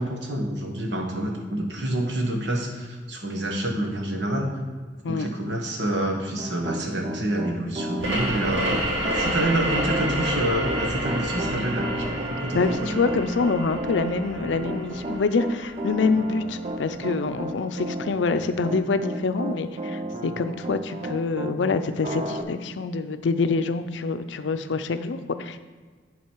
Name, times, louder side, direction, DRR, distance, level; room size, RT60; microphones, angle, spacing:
voice 1, 0.0-4.6 5.1-13.2, right 1 dB, 70° right, 1 dB, 1.3 m, -28 dB
Piano, 6.4-21.6 22.0-22.4, right 1 dB, 35° right, 0.5 m, -33 dB
sound 1, 8.0-17.4, right 1 dB, 90° right, 2.5 m, -30 dB
voice 2, 12.5-25.6, left 4 dB, 80° left, 10 dB, 0.5 m, -26 dB
10.5 x 4.0 x 4.6 m, 1.5 s
head